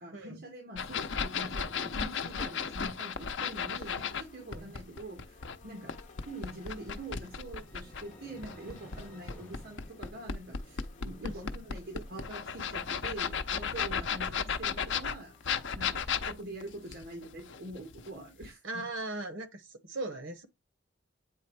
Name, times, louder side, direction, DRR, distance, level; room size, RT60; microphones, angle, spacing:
voice 1, 0.0-5.9 6.2-18.8, right 1 dB, 60° right, 1.8 m, -45 dB
sound 1, 0.8-4.2 4.5-8.0 8.4-18.1 18.4-18.5, left 6 dB, 75° left, 0.6 m, -34 dB
sound 2, 3.5-16.0, left 3 dB, 40° left, 1.0 m, -57 dB
sound 3, 6.3-10.7, right 1 dB, 10° left, 1.6 m, -56 dB
voice 2, 18.6-19.6 19.9-20.5, right 2 dB, 90° right, 1.1 m, -38 dB
8.4 x 3.1 x 4.7 m
head